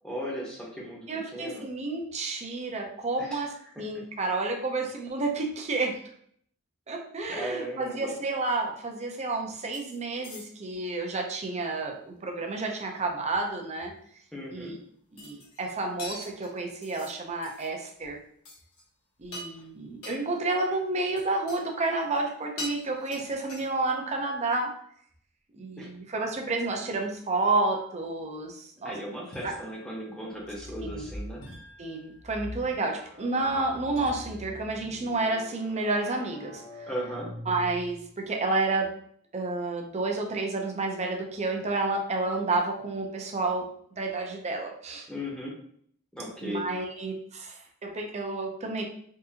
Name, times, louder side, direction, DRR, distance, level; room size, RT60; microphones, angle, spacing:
voice 1, 0.0-1.6 3.2-3.4 7.3-8.1 14.3-14.7 25.8-25.9 28.8-31.4 36.9-37.3 45.1-45.5 46.1-46.6, equal, 5° left, -4 dB, 0.8 m, -36 dB
voice 2, 1.1-6.0 6.9-13.9 14.5-14.7 15.1-18.2 19.2-24.7 25.6-28.9 29.4-29.5 30.9-31.1 31.8-36.9 37.5-38.9 39.3-43.7 44.0-45.1 46.4-48.8, right 3 dB, 30° right, 2 dB, 0.5 m, -30 dB
sound 1, 9.7-10.0 10.2-10.8 15.2-15.7 16.0-17.2 17.4-17.7 18.0-18.2 18.5-18.8 19.2-19.7 20.0-20.2 21.1-21.6 21.9-22.3 22.6-23.9, left 1 dB, 85° left, 1.1 m, -42 dB
sound 2, 29.3-30.6 31.4-32.6 34.0-34.8, equal, 55° left, 1.0 m, -50 dB
sound 3, 30.4-31.3 32.2-38.2, left 1 dB, 35° left, 1.0 m, -43 dB
3.6 x 2.6 x 2.7 m, 0.64 s
head